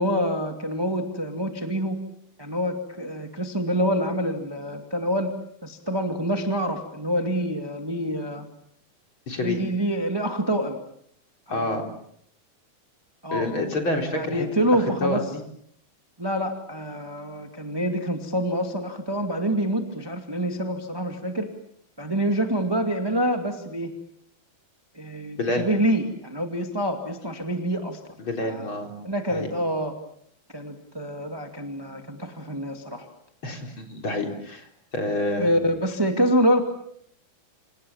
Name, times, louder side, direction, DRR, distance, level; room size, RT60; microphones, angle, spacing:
voice 1, 0.0-2.0 2.4-5.3 5.6-8.4 9.4-10.8 11.5-11.7 13.2-13.5 14.1-15.2 16.2-21.5 22.0-23.9 24.9-28.0 28.4-28.7 29.0-30.0 30.5-33.1 35.4-36.6, equal, 10° right, 4 dB, 1.4 m, -26 dB
voice 2, 9.3-9.6 11.5-11.8 13.3-15.2 25.4-25.7 28.2-28.9 29.3-29.5 33.4-34.7 34.9-35.5, left 2 dB, 30° left, 3 dB, 4.6 m, -28 dB
28.0 x 28.0 x 7.2 m, 0.71 s
omnidirectional pair, 4.4 m